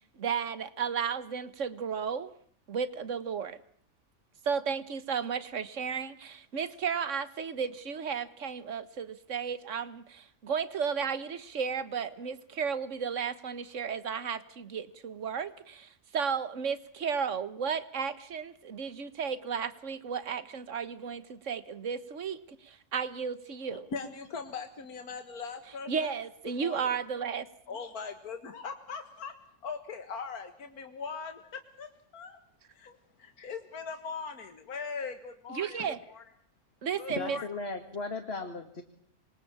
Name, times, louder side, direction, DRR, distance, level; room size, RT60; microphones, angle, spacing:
voice 1, 0.1-2.3 2.7-3.6 4.4-23.9 25.9-27.5 35.5-36.0 36.8-37.4, right 6 dB, 55° right, 14 dB, 1.7 m, -34 dB
voice 2, 23.9-26.1 26.5-27.0 27.7-29.3 29.6-31.4 31.8-32.4 32.7-36.2 37.0-37.5, left 5 dB, 85° left, 7 dB, 2.2 m, -40 dB
voice 3, 37.1-38.8, left 3 dB, 45° left, 5 dB, 2.4 m, -36 dB
26.5 x 22.5 x 8.8 m, 0.62 s
omnidirectional pair, 1.5 m